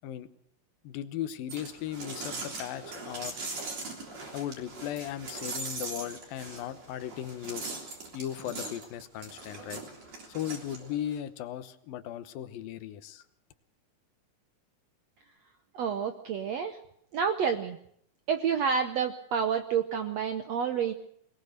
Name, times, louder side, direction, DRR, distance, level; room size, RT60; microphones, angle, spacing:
voice 1, 0.8-3.3 4.3-7.7 8.1-9.8 10.3-13.2, left 11 dB, 75° left, 11 dB, 2.8 m, -37 dB
sound 1, 1.5-11.2, right 3 dB, 45° right, 4.6 m, -40 dB
voice 2, 15.7-16.8 17.1-17.8 18.3-20.9, right 7 dB, 75° right, 7 dB, 1.5 m, -29 dB
21.5 x 20.5 x 6.6 m, 0.68 s
omnidirectional pair, 4.3 m